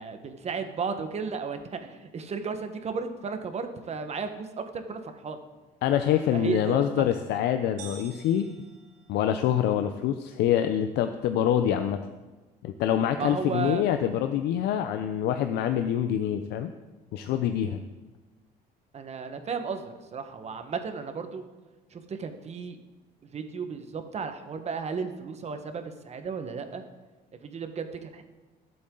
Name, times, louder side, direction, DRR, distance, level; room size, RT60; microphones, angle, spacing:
voice 1, 0.0-5.4 6.3-7.1 13.2-14.1 18.9-21.5 21.9-22.8 23.3-26.8 27.4-28.2, right 5 dB, 40° right, 7 dB, 1.4 m, -34 dB
voice 2, 5.8-8.5 9.1-12.0 12.6-16.7 17.1-17.8, left 10 dB, 80° left, 8 dB, 0.7 m, -25 dB
sound 1, 7.8-9.7, right 7 dB, 85° right, 2.4 m, -49 dB
21.0 x 7.9 x 3.9 m, 1.2 s
cardioid pair, 110°, 17 cm